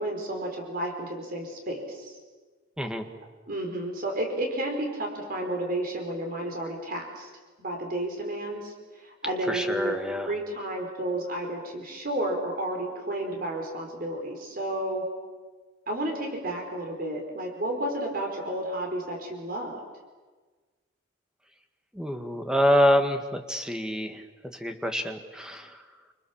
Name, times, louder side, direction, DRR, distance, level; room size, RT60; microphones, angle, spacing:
voice 1, 0.0-2.2 3.5-7.3 7.6-10.0 10.3-15.0 15.9-19.8, right 1 dB, 50° right, 2 dB, 4.9 m, -32 dB
voice 2, 9.5-10.3 22.0-24.2 24.6-25.7, equal, 5° right, 5 dB, 1.9 m, -26 dB
28.0 x 26.0 x 7.3 m, 1.4 s
head